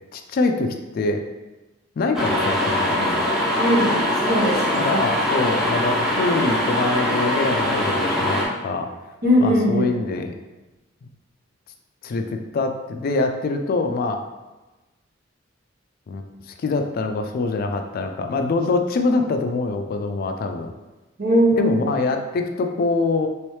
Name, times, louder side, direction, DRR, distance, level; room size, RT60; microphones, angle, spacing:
voice 1, 0.1-1.2 2.0-3.2 4.7-8.9 9.4-10.3 11.0-11.1 12.0-14.2 16.1-20.7 21.6-23.3, left 3 dB, 50° left, 5 dB, 0.3 m, -24 dB
sound 1, 2.1-8.4, left 1 dB, ahead, 0.7 m, -22 dB
voice 2, 3.6-5.0 9.2-9.9 21.2-21.8, equal, 55° right, -4 dB, 1.0 m, -20 dB
3.1 x 3.1 x 3.1 m, 1.1 s
head